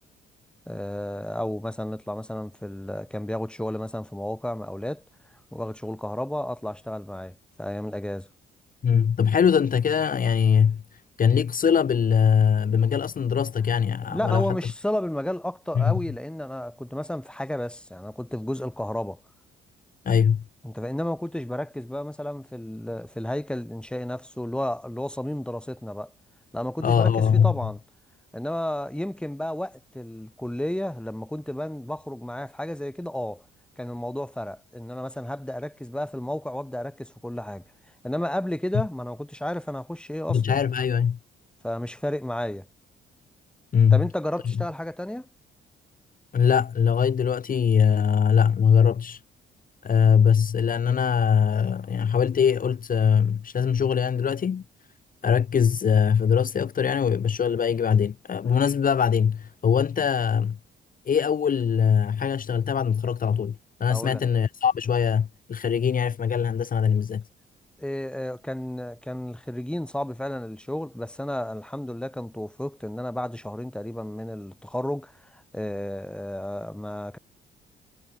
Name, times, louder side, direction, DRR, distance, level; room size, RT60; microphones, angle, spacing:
voice 1, 0.7-5.0 5.5-8.3 14.1-19.2 20.6-26.1 26.5-27.8 28.3-33.4 33.8-37.6 38.0-40.6 41.6-42.7 43.9-45.3 63.9-64.2 67.8-77.2, left 1 dB, 5° left, 5.9 m, -32 dB
voice 2, 8.8-10.8 11.2-14.4 15.7-15.9 20.0-20.4 26.8-27.5 40.3-41.2 43.7-44.1 46.3-49.2 49.8-54.6 55.2-60.6 61.1-67.2, left 7 dB, 45° left, 1.4 m, -22 dB
cardioid pair, 90°, 20 cm